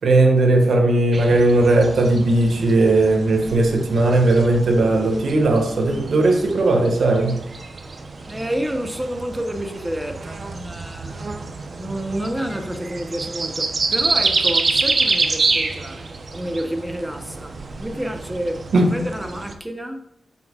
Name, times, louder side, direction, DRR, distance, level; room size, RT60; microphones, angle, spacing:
voice 1, 0.0-7.5 18.7-18.9, right 2 dB, 70° right, 1.8 m, -17 dB
sound 1, 1.1-19.5, right 3 dB, 45° right, 0.9 m, -27 dB
voice 2, 8.3-11.3 11.8-16.1 16.3-17.5 17.8-18.6 18.9-20.0, equal, 10° right, 1.0 m, -29 dB
9.2 x 7.7 x 2.5 m
wide cardioid pair, 120°, 0 cm